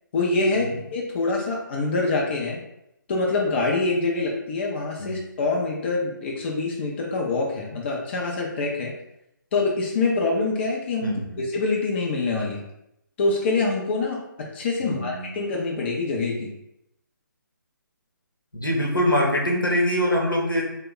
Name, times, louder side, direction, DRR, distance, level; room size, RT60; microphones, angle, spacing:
voice 1, 0.1-2.6 3.1-8.9 9.5-12.6 13.2-16.5, left 3 dB, 35° left, -2 dB, 0.5 m, -25 dB
voice 2, 11.0-11.4 14.8-15.3 18.5-20.6, left 1 dB, 90° left, -2 dB, 0.9 m, -24 dB
2.9 x 2.2 x 3.6 m, 0.82 s
figure-of-eight pair, 145°, 11 cm